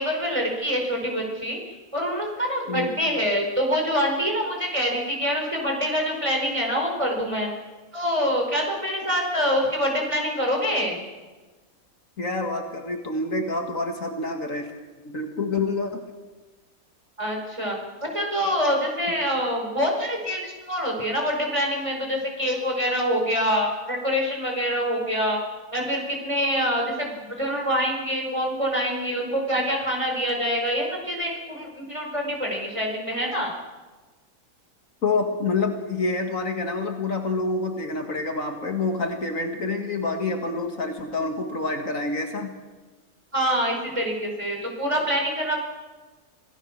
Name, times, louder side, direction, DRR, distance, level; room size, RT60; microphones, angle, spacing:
voice 1, 0.0-1.6 1.9-7.5 7.9-11.0 17.2-25.4 25.7-33.5 43.3-45.6, equal, 20° right, 1 dB, 4.8 m, -25 dB
voice 2, 12.2-14.7 15.0-16.0 35.0-42.5, left 3 dB, 60° left, 4 dB, 2.4 m, -27 dB
26.5 x 17.0 x 6.6 m, 1.3 s
omnidirectional pair, 1.6 m